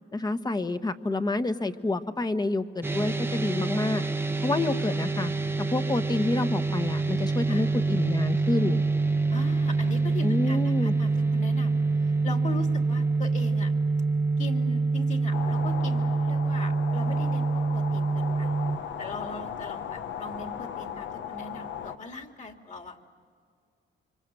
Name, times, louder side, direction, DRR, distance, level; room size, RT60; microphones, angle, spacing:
voice 1, 0.1-4.0 4.4-5.3 5.6-8.8 10.2-11.0, left 2 dB, 20° left, 10 dB, 1.2 m, -28 dB
sound 1, 2.8-18.8, right 3 dB, 10° right, 0.9 m, -26 dB
voice 2, 9.3-13.7 14.4-18.5 19.0-23.0, left 3 dB, 40° left, 4 dB, 2.6 m, -40 dB
sound 2, 15.3-22.0, left 8 dB, 70° left, 1.1 m, -37 dB
25.5 x 25.5 x 7.7 m, 2.2 s
cardioid pair, 90°, 20 cm